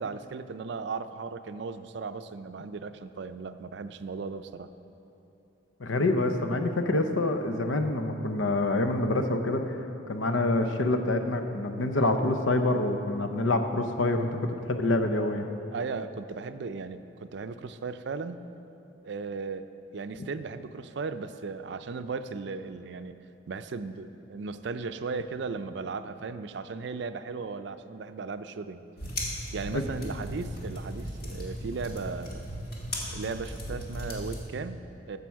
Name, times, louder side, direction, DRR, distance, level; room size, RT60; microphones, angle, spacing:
voice 1, 0.0-4.7 15.7-18.4 19.0-19.7 19.9-23.2 23.5-28.8 29.5-32.4 33.1-35.2, right 4 dB, 60° right, 11 dB, 0.4 m, -36 dB
voice 2, 5.8-9.6 10.1-15.4 29.7-29.8, left 2 dB, 90° left, 6 dB, 0.8 m, -26 dB
sound 1, 29.0-34.4, equal, 50° left, 1.7 m, -37 dB
13.5 x 6.8 x 4.6 m, 3.0 s
head